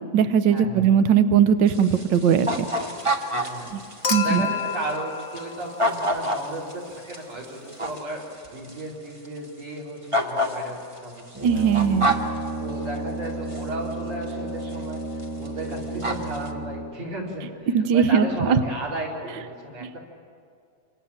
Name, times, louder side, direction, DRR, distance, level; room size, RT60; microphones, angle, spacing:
voice 1, 0.1-2.5 3.7-3.8 4.1-4.4 11.4-12.1 17.7-18.6 19.8-20.0, right 7 dB, 80° right, 10 dB, 1.0 m, -19 dB
sound 1, 1.7-8.8 9.2-9.3 10.1-12.4 13.5-13.6 14.2-14.3 14.7-14.9 15.2-15.5 15.7-16.5, equal, 30° right, 0.5 m, -28 dB
voice 2, 3.3-11.6 12.6-20.0, right 1 dB, 60° right, -3 dB, 6.0 m, -34 dB
Human group actions / Chink clink / Liquid, 4.0-6.4 7.9-8.0, left 6 dB, 60° left, 0.7 m, -30 dB
Brass instrument, 11.3-17.1, right 2 dB, 10° right, 1.0 m, -33 dB
27.0 x 26.0 x 7.4 m, 2.2 s
omnidirectional pair, 3.4 m